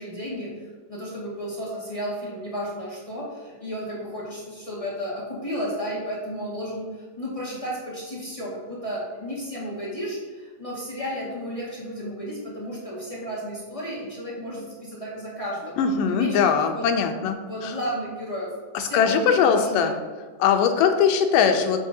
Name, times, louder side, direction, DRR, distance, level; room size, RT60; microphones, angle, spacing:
voice 1, 0.0-16.9 17.2-18.5 18.8-19.9, equal, 25° left, -6 dB, 0.7 m, -33 dB
voice 2, 15.8-17.4 17.6-17.8 18.7-19.9 20.4-21.8, left 7 dB, 85° left, 6 dB, 2.3 m, -21 dB
8.6 x 7.7 x 2.7 m, 1.5 s
omnidirectional pair, 3.8 m